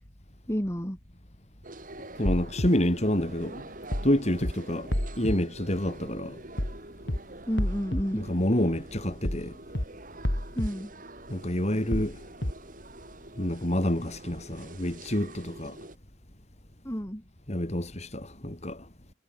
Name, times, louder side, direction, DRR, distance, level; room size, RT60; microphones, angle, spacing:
voice 1, 0.5-1.0 7.5-8.2 10.5-10.9 16.8-17.2, equal, 15° left, 5.9 m, -30 dB
sound 1, 1.6-16.0, right 2 dB, 50° right, 7.9 m, -46 dB
voice 2, 2.2-3.7 4.0-6.4 8.1-9.6 11.3-12.2 13.4-15.8 17.5-18.9, left 1 dB, 40° left, 4.3 m, -28 dB
sound 2, 2.3-2.7 3.9-4.1 4.4-4.5 4.9-5.4 6.6-6.8 7.1-7.2 7.6-8.0 9.3-9.5 9.8-9.9 10.2-10.7 11.9-12.1 12.4-12.5, left 1 dB, 75° left, 3.5 m, -28 dB
head